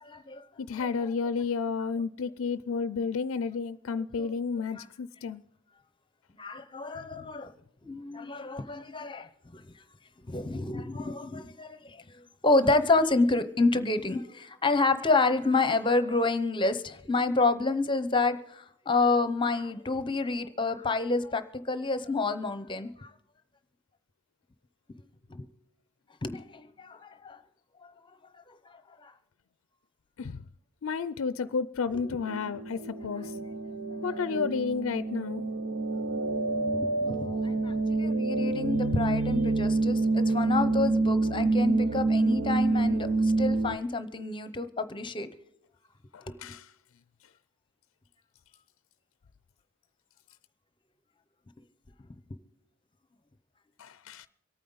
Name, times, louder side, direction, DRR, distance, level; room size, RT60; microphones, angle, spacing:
voice 1, 0.1-0.4 4.2-4.3 4.8-4.9 6.4-7.5 7.8-9.6 10.3-12.0 12.4-23.1 25.3-25.5 26.2-27.4 29.0-29.1 31.9-32.2 36.8-45.3 46.3-46.4, left 3 dB, 25° left, 0.8 m, -28 dB
voice 2, 0.6-5.4 30.2-30.4 30.8-33.3 34.0-35.4 46.1-46.7 53.8-54.3, left 5 dB, 70° left, 0.4 m, -31 dB
sound 1, 31.9-43.8, right 3 dB, 65° right, 0.7 m, -27 dB
25.0 x 9.2 x 4.0 m
head